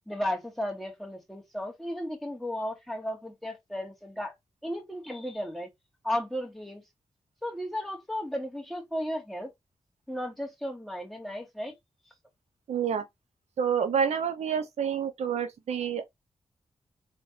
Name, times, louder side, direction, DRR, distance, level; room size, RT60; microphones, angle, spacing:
voice 1, 0.1-4.3 4.6-5.7 6.0-6.8 7.4-9.5 10.1-11.7, left 1 dB, ahead, 2.4 m, -34 dB
voice 2, 12.7-13.0 13.6-16.0, right 7 dB, 85° right, 0.8 m, -28 dB
4.4 x 3.3 x 3.3 m
cardioid pair, 50°, 11 cm